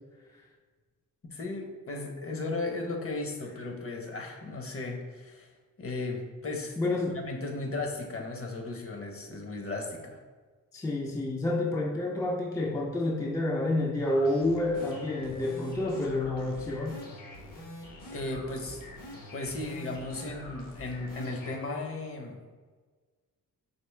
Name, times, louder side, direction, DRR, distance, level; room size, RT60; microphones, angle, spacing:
voice 1, 1.2-5.5 5.8-6.8 7.1-10.2 18.1-18.8 19.3-22.4, left 2 dB, 40° left, 3 dB, 0.8 m, -36 dB
voice 2, 6.8-7.2 10.7-17.0, left 2 dB, 10° left, 0 dB, 0.3 m, -29 dB
sound 1, 14.0-21.6, left 1 dB, 65° left, 1.0 m, -45 dB
4.4 x 2.9 x 3.3 m, 1.4 s
cardioid pair, 85°, 35 cm